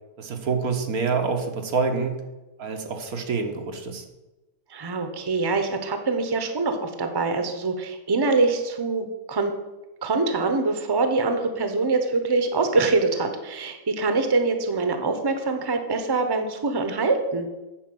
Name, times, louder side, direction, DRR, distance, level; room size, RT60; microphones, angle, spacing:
voice 1, 0.2-2.3 2.6-4.0, right 4 dB, 85° right, 4 dB, 1.7 m, -27 dB
voice 2, 4.7-9.5 10.0-17.5, right 3 dB, 20° right, 7 dB, 0.8 m, -24 dB
9.3 x 4.8 x 7.7 m, 1.1 s
omnidirectional pair, 1.5 m